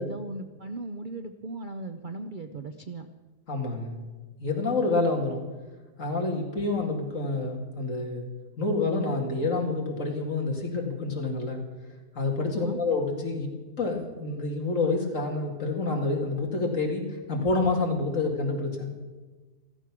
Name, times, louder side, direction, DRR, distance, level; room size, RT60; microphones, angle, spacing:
voice 1, 0.0-3.1 12.4-12.8, right 2 dB, 85° right, 7 dB, 0.4 m, -38 dB
voice 2, 3.5-4.0 4.4-5.4 6.0-8.3 8.6-11.6 12.1-13.5 13.8-18.9, left 3 dB, 50° left, 1 dB, 2.5 m, -28 dB
14.5 x 14.0 x 6.0 m, 1.3 s
omnidirectional pair, 1.8 m